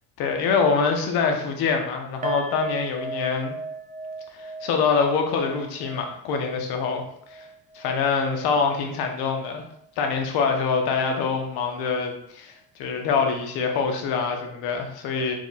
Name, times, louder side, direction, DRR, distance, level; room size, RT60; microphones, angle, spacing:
voice 1, 0.2-3.6 4.3-7.0 7.3-7.5 7.7-9.6 10.0-12.5 12.8-15.3, left 5 dB, 85° left, 3 dB, 0.9 m, -25 dB
sound 1, 2.2-9.4 9.7-9.9 10.3-10.4, right 3 dB, 25° right, 0.3 m, -38 dB
4.6 x 2.3 x 4.0 m, 0.71 s
cardioid pair, 125°, 37 cm